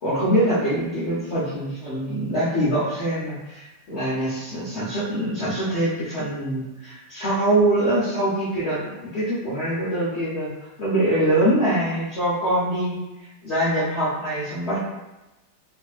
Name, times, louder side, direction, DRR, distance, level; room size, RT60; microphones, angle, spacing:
voice 1, 0.0-10.5 10.8-13.0 13.4-14.8, right 1 dB, 85° left, -10 dB, 0.6 m, -24 dB
4.1 x 2.5 x 2.3 m, 1.0 s
omnidirectional pair, 2.4 m